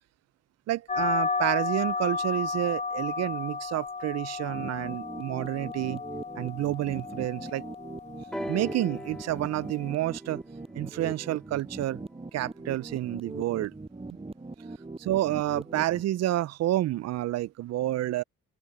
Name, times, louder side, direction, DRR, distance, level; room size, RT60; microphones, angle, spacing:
voice 1, 0.7-6.0 6.4-7.6 8.5-10.4 10.7-12.0 12.3-13.7 15.0-18.2, right 14 dB, 60° right, 0.4 m, -29 dB
sound 1, 0.9-9.9, left 4 dB, 25° left, 0.7 m, -33 dB
sound 2, 4.5-16.0, right 3 dB, 20° right, 6.3 m, -41 dB
sound 3, 8.3-12.1 13.1-13.2, equal, ahead, 2.0 m, -41 dB
open air
cardioid pair, 90°, 30 cm